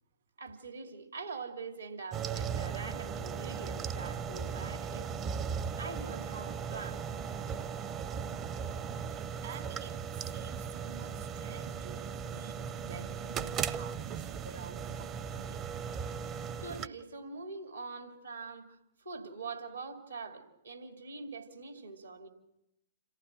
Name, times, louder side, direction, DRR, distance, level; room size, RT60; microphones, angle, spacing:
voice 1, 0.4-5.1 5.8-7.0 16.6-22.3, right 4 dB, 80° right, 2.8 m, -44 dB
sound 1, 2.1-16.9, right 7 dB, 30° right, 0.7 m, -37 dB
voice 2, 9.1-15.7, right 7 dB, 60° right, 1.8 m, -49 dB
27.5 x 15.0 x 6.4 m
figure-of-eight pair, 110°, 0 cm